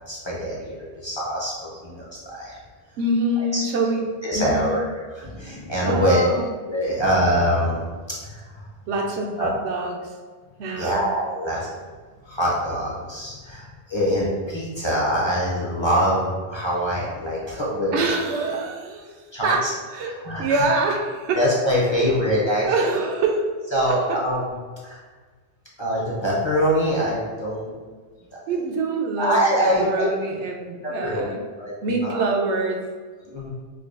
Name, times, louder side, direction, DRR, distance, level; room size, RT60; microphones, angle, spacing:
voice 1, 0.1-2.6 3.4-3.6 4.2-4.8 5.1-6.2 6.7-7.9 8.2-8.7 9.4-9.5 10.8-11.8 12.2-18.1 19.3-19.7 20.1-20.7 21.4-22.9 23.7-25.0 25.8-27.7 29.2-30.1 30.8-31.2 31.6-32.2 33.2-33.5, equal, 35° left, -6 dB, 0.5 m, -24 dB
voice 2, 3.0-4.0 4.3-4.8 5.9-6.5 8.9-10.1 10.6-11.1 17.9-20.1 20.4-21.4 22.6-23.4 23.9-24.2 28.5-31.4 31.8-32.8, right 3 dB, 90° right, 1 dB, 0.9 m, -25 dB
4.7 x 2.2 x 2.4 m, 1.4 s
omnidirectional pair, 1.1 m